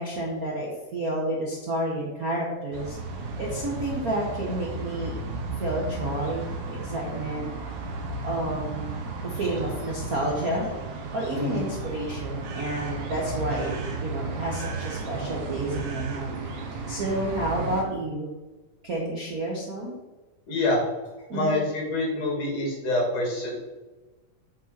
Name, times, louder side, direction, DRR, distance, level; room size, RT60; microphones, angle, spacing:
voice 1, 0.0-3.0 3.4-5.1 5.6-7.5 8.2-9.0 9.2-10.7 11.1-13.7 14.0-16.6 16.9-18.3 18.8-20.0 21.3-21.6, right 1 dB, 90° right, -3 dB, 0.8 m, -30 dB
sound 1, 2.7-17.8, right 3 dB, 70° right, 2.5 m, -34 dB
voice 2, 20.5-20.8 21.3-23.6, left 2 dB, 50° left, -2 dB, 3.3 m, -26 dB
8.5 x 5.7 x 4.4 m, 1.2 s
omnidirectional pair, 3.8 m